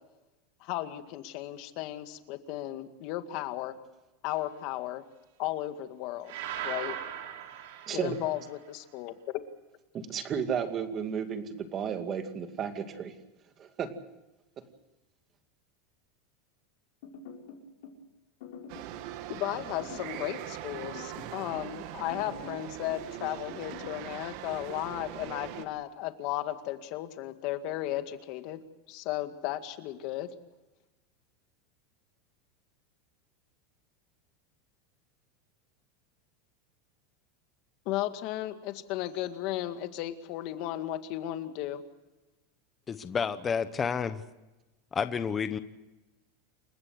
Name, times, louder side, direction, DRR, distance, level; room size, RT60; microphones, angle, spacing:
voice 1, 0.6-3.8 4.2-5.0 5.4-6.3 6.6-7.0 7.9-9.4 19.3-28.6 28.9-30.3 37.9-41.8, left 14 dB, 45° left, 8 dB, 2.0 m, -35 dB
sound 1, 6.3-8.5, right 10 dB, 70° right, 3.9 m, -39 dB
voice 2, 7.9-8.2 9.9-13.1 13.6-13.9, right 7 dB, 25° right, 7 dB, 2.3 m, -33 dB
sound 2, 17.0-18.0 18.4-19.0 19.8-20.4 20.7-21.7 22.1-22.7 23.5-24.0, left 5 dB, 70° left, 6.2 m, -46 dB
sound 3, 18.7-25.7, right 12 dB, 50° right, 1.7 m, -41 dB
voice 3, 42.9-44.2 44.9-45.6, left 6 dB, 15° left, 11 dB, 0.9 m, -30 dB
29.0 x 15.5 x 8.0 m, 1.0 s
supercardioid pair, 165°, 0 cm